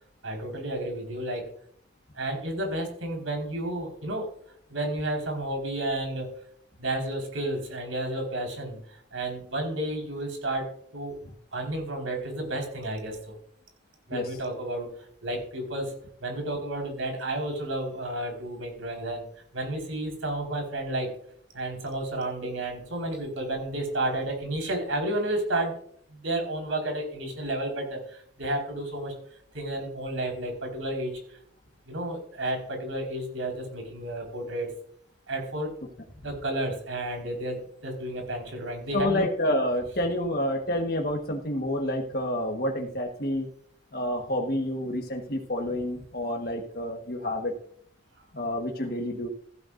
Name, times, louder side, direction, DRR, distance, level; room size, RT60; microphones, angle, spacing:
voice 1, 0.2-1.5 2.1-4.3 4.7-6.3 6.8-11.2 11.5-13.3 14.1-14.9 15.2-15.9 16.2-19.3 19.5-21.1 21.5-25.7 26.1-29.1 29.5-31.4 31.9-34.7 35.3-35.7 36.2-39.3, right 1 dB, 90° right, 2 dB, 4.5 m, -31 dB
voice 2, 38.9-43.5 43.9-47.5 48.3-49.3, left 1 dB, 50° left, 1 dB, 1.4 m, -28 dB
15.5 x 11.5 x 2.6 m, 0.63 s
head